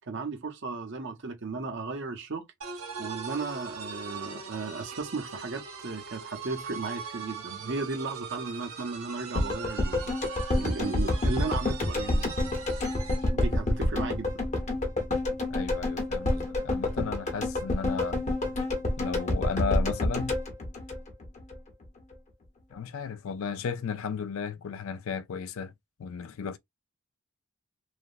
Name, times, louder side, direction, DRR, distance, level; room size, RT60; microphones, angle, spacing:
voice 1, 0.1-2.5 3.0-10.1 10.5-12.2 13.3-14.4, right 3 dB, 55° right, 0.7 m, -35 dB
sound 1, 2.6-13.3, right 6 dB, 85° right, 1.5 m, -41 dB
sound 2, 9.4-21.5 21.8-21.9, left 1 dB, 30° left, 0.8 m, -28 dB
voice 2, 15.5-18.2 19.0-20.4 22.7-25.7 26.0-26.6, left 6 dB, 65° left, 0.4 m, -34 dB
3.2 x 2.0 x 2.5 m
head